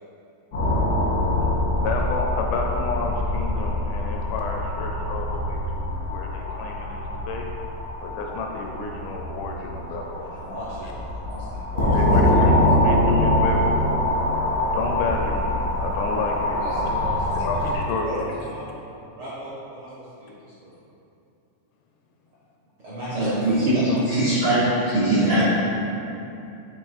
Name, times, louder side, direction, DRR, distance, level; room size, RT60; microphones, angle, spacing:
sound 1, 0.5-17.7, left 1 dB, 60° left, 0.8 m, -24 dB
voice 1, 1.8-7.5 8.0-10.4 11.9-13.8 14.7-16.9 17.3-18.2, left 3 dB, 80° left, 1 dB, 1.9 m, -31 dB
voice 2, 10.2-12.4 16.6-17.6 18.0-18.7 19.2-20.8 22.8-24.3, right 1 dB, 65° right, -10 dB, 1.3 m, -35 dB
voice 3, 24.1-25.4, right 1 dB, 85° right, -10 dB, 1.0 m, -20 dB
6.9 x 2.9 x 4.7 m, 2.7 s
omnidirectional pair, 3.8 m